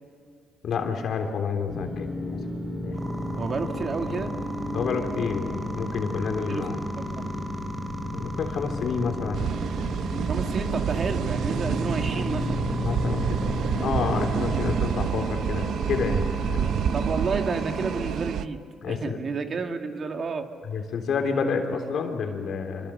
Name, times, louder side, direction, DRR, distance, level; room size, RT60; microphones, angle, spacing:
voice 1, 0.6-2.4 2.8-3.1 4.7-6.8 8.1-9.5 12.8-13.4 13.7-16.6 18.8-19.2 20.7-22.9, left 5 dB, 65° left, 4 dB, 3.5 m, -29 dB
sound 1, 1.7-14.7, left 1 dB, ahead, 3.2 m, -33 dB
sound 2, 2.9-18.0, equal, 20° right, 2.7 m, -37 dB
voice 2, 3.4-4.3 6.5-6.7 7.0-7.3 10.3-12.6 16.6-18.6 18.9-20.5, right 4 dB, 45° right, 5 dB, 2.0 m, -31 dB
sound 3, 9.3-18.5, right 8 dB, 75° right, 0.8 m, -28 dB
25.5 x 23.5 x 6.6 m, 2.3 s
cardioid pair, 90°, 0 cm